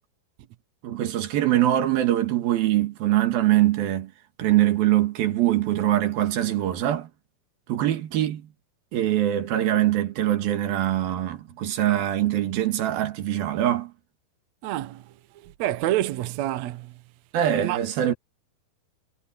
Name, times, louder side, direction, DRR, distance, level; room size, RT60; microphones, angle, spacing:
voice 1, 0.8-4.1 4.4-7.1 7.7-8.5 8.9-13.9 17.3-18.1, right 13 dB, 70° right, 3.5 m, -23 dB
voice 2, 14.6-15.0 15.4-16.9 17.6-17.8, right 14 dB, 85° right, 1.5 m, -27 dB
omnidirectional pair, 4.5 m